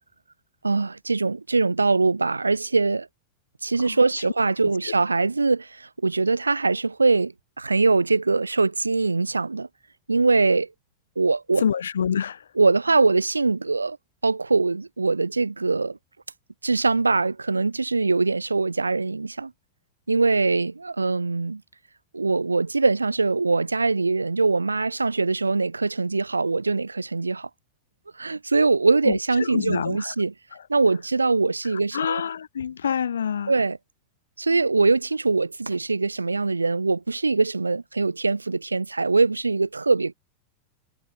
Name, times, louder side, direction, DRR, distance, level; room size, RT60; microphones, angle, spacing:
voice 1, 0.6-3.1 3.6-9.7 10.1-10.7 11.2-11.6 12.5-14.0 14.2-16.0 16.6-19.5 20.1-21.6 22.1-27.5 28.1-30.3 30.7-32.2 33.5-33.8 34.4-40.1, right 3 dB, 80° right, 3.0 m, -22 dB
voice 2, 11.6-12.4 29.1-29.2 29.5-30.1 31.9-33.5, left 7 dB, 70° left, 2.3 m, -26 dB
figure-of-eight pair, 90°, 0 cm